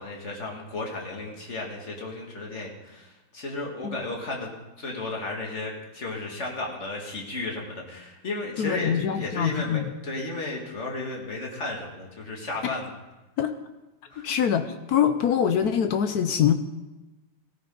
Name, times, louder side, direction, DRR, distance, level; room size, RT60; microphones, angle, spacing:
voice 1, 0.0-4.5 4.8-12.9 14.1-14.3, left 2 dB, 35° left, -1 dB, 2.4 m, -34 dB
voice 2, 8.6-9.9 12.6-12.7 13.4-13.5 14.2-16.5, left 9 dB, 75° left, 9 dB, 0.9 m, -24 dB
17.5 x 14.0 x 3.9 m, 1.1 s
omnidirectional pair, 2.4 m